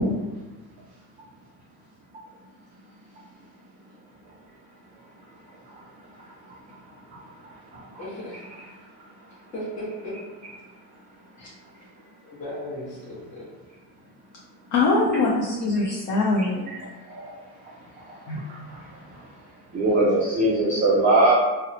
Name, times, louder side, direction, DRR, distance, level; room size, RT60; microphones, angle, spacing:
voice 1, 8.0-8.8 9.5-10.2 12.2-13.5 17.3-17.5, equal, 20° left, -11 dB, 0.8 m, -36 dB
voice 2, 14.7-16.7 18.3-18.4, left 3 dB, 50° left, -3 dB, 0.5 m, -22 dB
voice 3, 18.0-19.3 19.7-21.3, right 2 dB, 25° right, -6 dB, 0.3 m, -23 dB
2.8 x 2.0 x 2.6 m, 1.2 s
cardioid pair, 135°, 40 cm